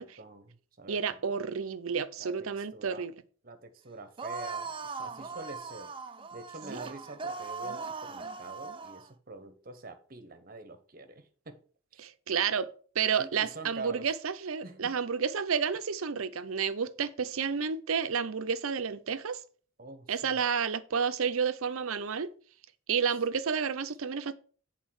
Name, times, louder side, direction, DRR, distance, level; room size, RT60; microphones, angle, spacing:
voice 1, 0.0-1.0 2.2-3.1 3.4-5.9 6.3-11.6 11.9-12.0 13.2-14.1 14.6-15.0 19.8-20.4, right 2 dB, 40° right, 1.0 m, -46 dB
voice 2, 0.9-3.1 12.0-12.7 13.0-19.4 20.1-22.3 22.9-24.3, right 6 dB, 80° right, 0.6 m, -30 dB
sound 1, 4.2-9.1, right 4 dB, 25° right, 0.4 m, -39 dB
8.3 x 4.1 x 6.3 m
head